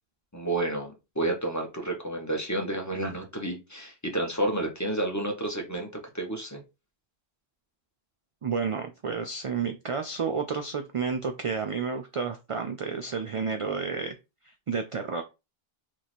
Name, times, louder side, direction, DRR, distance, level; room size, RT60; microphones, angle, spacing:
voice 1, 0.3-6.6, right 1 dB, 20° left, 0.8 m, -30 dB
voice 2, 8.4-14.2 14.4-15.2, right 5 dB, 60° right, 0.3 m, -31 dB
3.0 x 2.7 x 4.1 m
omnidirectional pair, 1.0 m